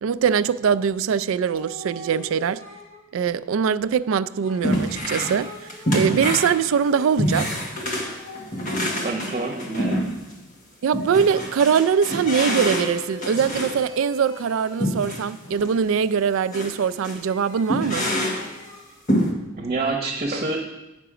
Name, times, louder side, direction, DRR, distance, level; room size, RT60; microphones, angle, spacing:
voice 1, 0.0-2.6 3.1-7.6 10.8-18.1, right 7 dB, 75° right, 0.3 m, -22 dB
sound 1, 1.5-3.2 4.4-7.5 7.9-10.3 10.8-11.5 12.2-15.0 15.4-18.9, left 2 dB, 80° left, 2.5 m, -42 dB
sound 2, 4.6-5.4 5.7-10.4 10.9-13.8 14.8-15.3 15.6-15.7 16.5-16.8 17.0-17.2 17.7-18.5 19.1-19.3, equal, 40° left, 1.3 m, -26 dB
voice 2, 9.0-10.1 19.5-20.6, right 3 dB, 30° right, 1.0 m, -27 dB
10.0 x 5.9 x 4.9 m
head